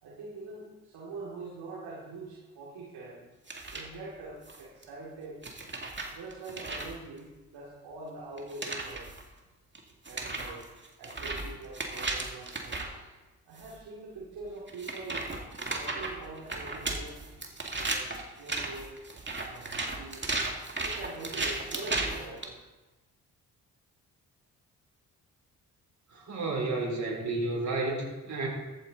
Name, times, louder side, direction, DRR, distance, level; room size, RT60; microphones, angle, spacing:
voice 1, 0.0-3.2 3.7-5.4 6.0-9.1 10.1-10.7 11.0-12.8 13.5-15.4 15.7-17.3 17.8-19.0 19.4-22.6, right 3 dB, 65° right, -5 dB, 2.6 m, -44 dB
sound 1, 3.5-3.9 4.5-4.8 5.4-6.9 8.4-9.2 9.7-9.8 10.0-12.9 13.6-13.7 14.7-22.4, right 2 dB, 25° right, 2.3 m, -35 dB
voice 2, 26.1-28.5, right 2 dB, 45° right, -1 dB, 4.5 m, -31 dB
14.0 x 9.0 x 4.1 m, 1.1 s
hypercardioid pair, 50°, 41 cm